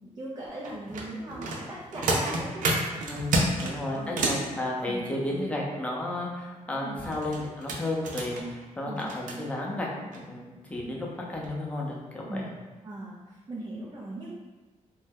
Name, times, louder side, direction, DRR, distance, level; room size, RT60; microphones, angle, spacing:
voice 1, 0.0-2.7 3.3-3.6 3.9-4.2 4.9-5.0 6.7-7.0 8.8-9.0 12.3-12.5 12.8-14.3, right 1 dB, 30° right, -4 dB, 0.5 m, -39 dB
sound 1, 0.6-4.5 6.9-9.4 10.1-10.2 10.7-10.8 11.3-11.5 11.9-12.0, right 2 dB, 80° right, 0.5 m, -30 dB
voice 2, 3.1-10.4 10.7-12.5, left 1 dB, 10° left, -3 dB, 0.6 m, -33 dB
2.7 x 2.2 x 3.5 m, 1.2 s
cardioid pair, 100°, 13 cm